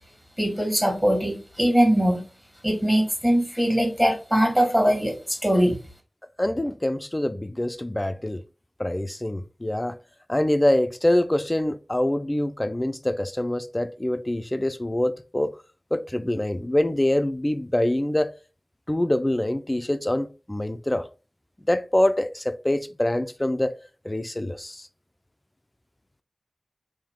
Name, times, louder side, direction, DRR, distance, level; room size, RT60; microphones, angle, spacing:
voice 1, 0.4-2.2 2.6-5.8, equal, 15° right, 1.5 m, -21 dB
voice 2, 6.4-8.4 8.8-10.0 10.3-15.5 15.9-18.3 18.9-21.1 21.7-23.7 24.0-24.9, left 1 dB, 20° left, 0.4 m, -25 dB
3.6 x 2.7 x 3.6 m
wide cardioid pair, 55°, 0 cm